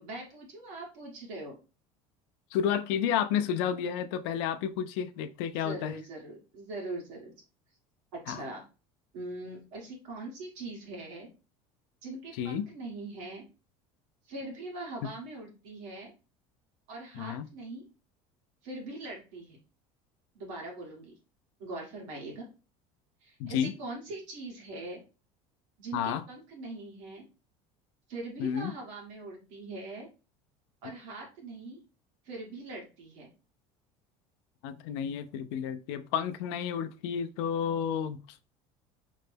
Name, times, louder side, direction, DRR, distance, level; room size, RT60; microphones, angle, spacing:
voice 1, 0.0-1.5 5.6-7.3 8.1-8.6 9.1-11.3 12.0-13.4 14.3-16.1 16.9-17.8 18.6-19.6 20.3-21.1 21.6-22.5 23.2-25.0 25.8-27.2 28.1-30.1 30.8-31.8 32.2-33.3, right 2 dB, 70° right, 1.5 m, -41 dB
voice 2, 2.5-5.9 8.3-8.4 12.4-12.7 17.2-17.4 23.4-23.7 25.9-26.2 28.4-28.7 34.6-38.2, left 8 dB, 80° left, 0.4 m, -31 dB
3.1 x 2.1 x 3.3 m
cardioid pair, 165°, 14 cm